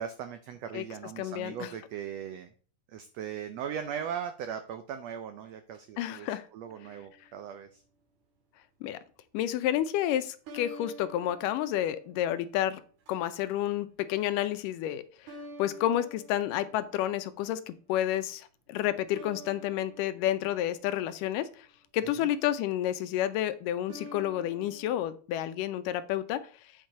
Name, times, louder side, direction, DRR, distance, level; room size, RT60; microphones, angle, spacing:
voice 1, 0.0-2.5 2.9-7.8 22.2-22.3, right 8 dB, 90° right, 8 dB, 1.4 m, -39 dB
voice 2, 1.2-1.7 6.0-6.5 8.8-9.0 9.3-12.8 13.1-21.7 21.9-26.4, left 12 dB, 80° left, 12 dB, 2.2 m, -30 dB
sound 1, 6.7-7.5 10.5-12.5 13.1-13.5 15.3-17.2 19.2-21.6 23.9-25.0, right 1 dB, 70° right, 3.0 m, -49 dB
8.8 x 4.6 x 5.2 m, 0.40 s
omnidirectional pair, 3.9 m